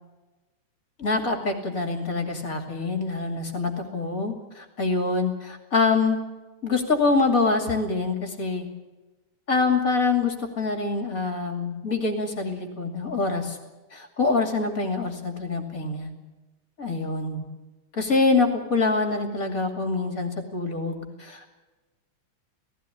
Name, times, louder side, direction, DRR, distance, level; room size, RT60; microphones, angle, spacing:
voice 1, 1.0-6.2 6.6-8.7 9.5-13.6 13.9-16.1 16.8-17.4 17.9-21.5, left 3 dB, 30° left, 5 dB, 2.5 m, -25 dB
17.5 x 16.0 x 9.9 m, 1.2 s
omnidirectional pair, 3.6 m